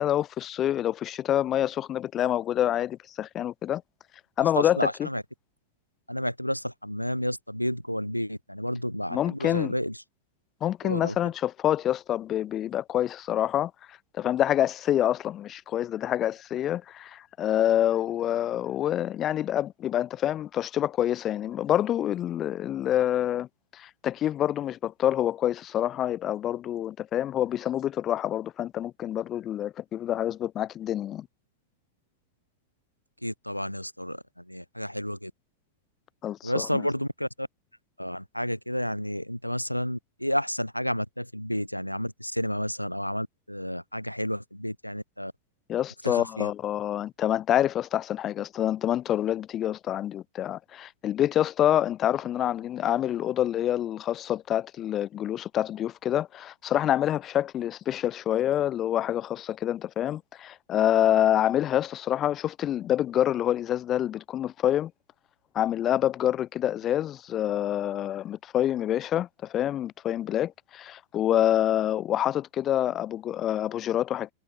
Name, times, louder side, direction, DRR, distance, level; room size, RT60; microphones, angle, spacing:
voice 1, 0.0-3.8 4.4-5.1 9.1-9.7 10.6-23.5 23.7-31.3 36.2-36.9 45.7-64.9 65.5-74.3, left 11 dB, 30° left, 0.5 m, -27 dB
voice 2, 4.4-5.2 6.1-10.0 10.8-11.1 33.2-35.3 36.4-37.5 38.0-45.3 46.0-46.5, equal, 90° left, 2.6 m, -31 dB
figure-of-eight pair, 90°, 0 cm